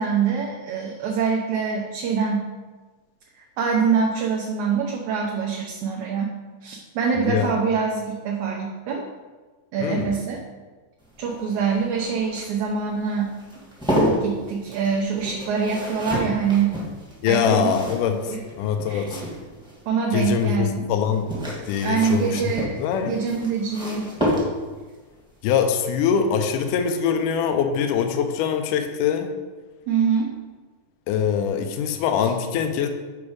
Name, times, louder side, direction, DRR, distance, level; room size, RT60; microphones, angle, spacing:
voice 1, 0.0-2.5 3.6-6.3 6.6-9.0 9.7-10.4 11.2-13.3 14.2-16.7 17.3-17.7 18.1-18.4 18.9-19.1 19.9-20.9 21.8-24.1 29.9-30.3, right 6 dB, 75° right, 0 dB, 1.8 m, -24 dB
voice 2, 7.2-7.5 9.8-10.1 17.2-19.2 20.1-21.3 21.7-23.2 25.4-29.3 31.1-32.9, left 7 dB, 80° left, 6 dB, 2.0 m, -23 dB
sound 1, 11.0-19.8 21.0-24.9 26.5-26.8 27.1-27.2, equal, ahead, 1.0 m, -30 dB
7.2 x 4.9 x 4.8 m, 1.3 s
omnidirectional pair, 4.1 m